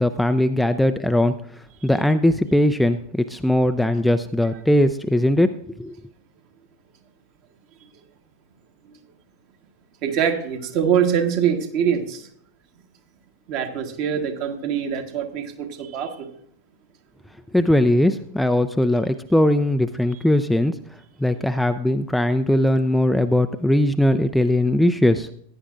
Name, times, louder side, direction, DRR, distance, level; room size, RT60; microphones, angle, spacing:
voice 1, 0.0-1.3 1.8-5.5 5.8-5.9 17.5-20.8 21.2-25.3, left 1 dB, ahead, 9 dB, 0.4 m, -19 dB
voice 2, 10.0-12.3 13.5-16.3, right 8 dB, 45° right, 5 dB, 1.3 m, -24 dB
15.5 x 10.0 x 2.5 m, 0.66 s
figure-of-eight pair, 90°, 0 cm